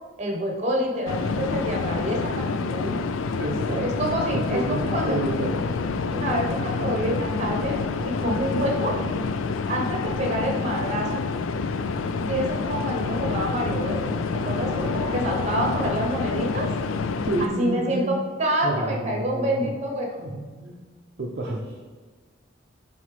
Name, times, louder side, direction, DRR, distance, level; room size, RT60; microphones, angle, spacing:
voice 1, 0.2-2.3 2.7-3.0 3.7-5.2 6.1-9.0 9.7-11.2 12.3-14.0 14.4-16.7 17.4-20.1, equal, 35° right, 0 dB, 1.0 m, -27 dB
sound 1, 1.1-17.5, left 4 dB, 75° left, 0.4 m, -27 dB
voice 2, 3.4-3.9 4.3-5.6 17.3-18.1 18.6-19.7 20.2-20.8 21.2-21.8, right 2 dB, 50° right, -2 dB, 0.5 m, -29 dB
7.2 x 4.1 x 3.3 m, 1.4 s
head